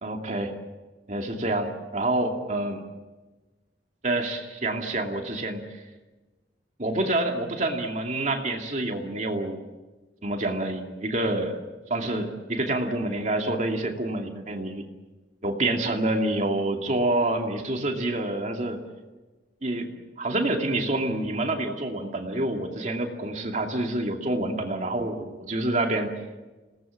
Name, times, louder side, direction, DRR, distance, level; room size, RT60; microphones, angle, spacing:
voice 1, 0.0-0.5 1.1-2.8 4.0-5.8 6.8-9.6 10.2-11.6 11.9-14.9 15.4-18.8 19.6-19.9 20.2-26.1, right 2 dB, 45° right, 3 dB, 2.5 m, -27 dB
28.5 x 19.0 x 7.5 m, 1.2 s
head